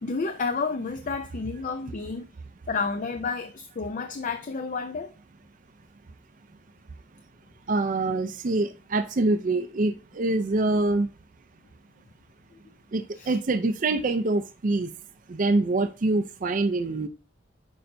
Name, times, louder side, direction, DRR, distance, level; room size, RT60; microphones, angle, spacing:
voice 1, 0.0-2.3 2.7-5.1 13.2-13.4, left 4 dB, 40° left, 0.4 m, -30 dB
voice 2, 7.7-11.1 12.9-14.9 15.3-17.1, right 2 dB, 45° right, 0.5 m, -25 dB
8.7 x 5.3 x 2.6 m
head